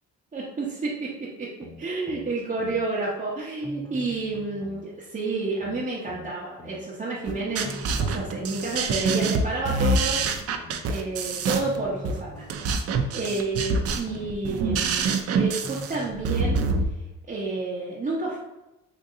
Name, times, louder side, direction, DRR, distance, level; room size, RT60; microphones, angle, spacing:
voice 1, 0.3-1.5 1.8-10.2 10.9-16.7 17.3-18.4, right 3 dB, 25° right, -7 dB, 0.7 m, -30 dB
sound 1, 1.6-2.9 3.6-4.9 5.6-6.9 7.6-8.9 9.6-10.9 11.6-12.9 13.6-14.9 15.6-16.9 17.6-17.7, left 1 dB, 10° left, 0.4 m, -43 dB
sound 2, 7.3-16.9, right 4 dB, 55° right, 0.4 m, -26 dB
3.8 x 2.6 x 2.5 m, 0.95 s
cardioid pair, 90°, 30 cm